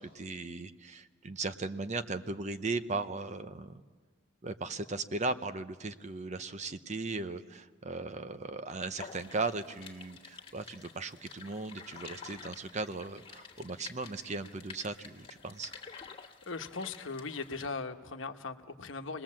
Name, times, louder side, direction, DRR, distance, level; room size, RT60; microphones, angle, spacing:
voice 1, 0.0-3.8 4.4-15.7, right 3 dB, 35° right, 11 dB, 0.8 m, -37 dB
sound 1, 9.0-17.7, left 6 dB, 30° left, 1.9 m, -50 dB
voice 2, 16.5-19.2, left 4 dB, 75° left, 7 dB, 1.1 m, -39 dB
28.5 x 20.0 x 7.5 m, 1.4 s
head